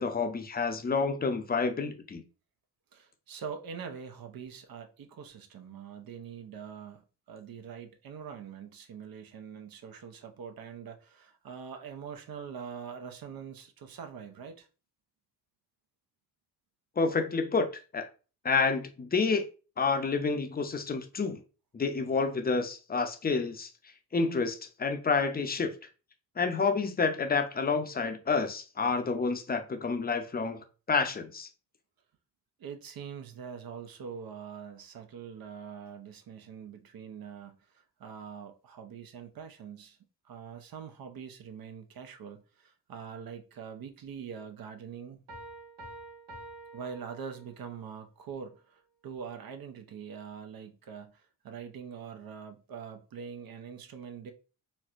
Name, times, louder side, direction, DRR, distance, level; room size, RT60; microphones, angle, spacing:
voice 1, 0.0-2.2 17.0-17.7 17.9-18.1 18.4-19.4 19.8-21.4 21.7-23.7 24.1-25.7 26.4-31.5, left 4 dB, 25° left, 0.6 m, -29 dB
voice 2, 2.9-7.0 7.3-14.7 32.6-40.0 40.2-45.2 46.7-54.3, right 7 dB, 60° right, 0.7 m, -44 dB
Piano, 45.3-47.8, right 2 dB, 80° right, 1.1 m, -47 dB
4.3 x 2.1 x 2.5 m
cardioid pair, 75°, 40 cm